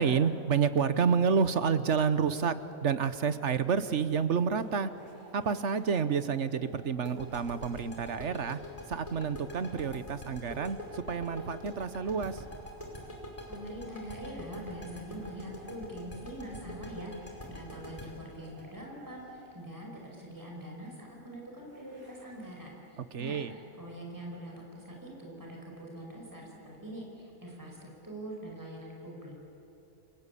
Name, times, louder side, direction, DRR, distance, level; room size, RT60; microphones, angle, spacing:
voice 1, 0.0-4.9 5.3-8.6 8.9-12.4 23.0-23.5, right 6 dB, 60° right, 13 dB, 1.3 m, -29 dB
sound 1, 4.5-23.0, right 1 dB, 85° right, 6.6 m, -58 dB
sound 2, 7.1-19.8, left 1 dB, 25° left, 5.2 m, -44 dB
voice 2, 13.5-29.3, right 1 dB, 15° right, -1 dB, 5.2 m, -44 dB
29.5 x 24.0 x 8.4 m, 2.9 s
omnidirectional pair, 1.5 m